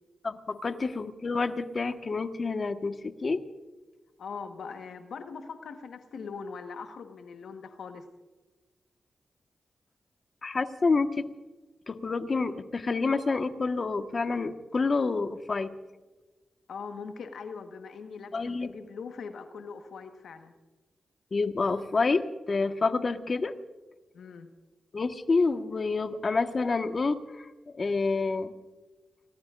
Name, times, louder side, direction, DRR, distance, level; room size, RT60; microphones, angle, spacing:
voice 1, 0.2-3.4 10.4-11.2 11.9-15.7 18.3-18.7 21.3-23.5 24.9-27.5 27.8-28.5, left 4 dB, 50° left, 7 dB, 1.4 m, -28 dB
voice 2, 4.2-8.1 16.7-20.5 24.1-24.5, left 5 dB, 80° left, 6 dB, 1.3 m, -41 dB
29.0 x 19.0 x 2.5 m, 1.2 s
supercardioid pair, 45°, 0 cm